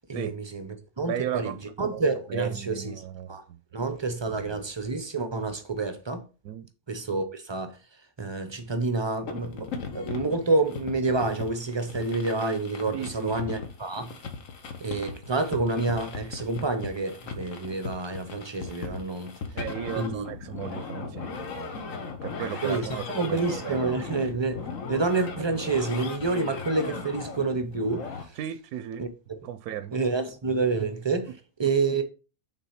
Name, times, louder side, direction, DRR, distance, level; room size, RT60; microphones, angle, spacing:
voice 1, 0.1-2.9 3.3-3.4 3.7-6.2 6.9-7.8 8.2-14.1 14.8-19.3 20.0-20.3 22.4-28.4 29.0-29.4 29.9-31.3 31.6-32.0, right 3 dB, 35° right, 0.4 m, -28 dB
voice 2, 1.1-2.0 2.3-3.3 4.2-4.6 6.4-6.7 12.9-13.5 19.5-23.9 28.4-29.0 29.4-30.0, right 10 dB, 85° right, 1.1 m, -36 dB
sound 1, 9.3-28.2, left 5 dB, 65° left, 1.4 m, -38 dB
6.2 x 3.8 x 5.7 m
omnidirectional pair, 1.6 m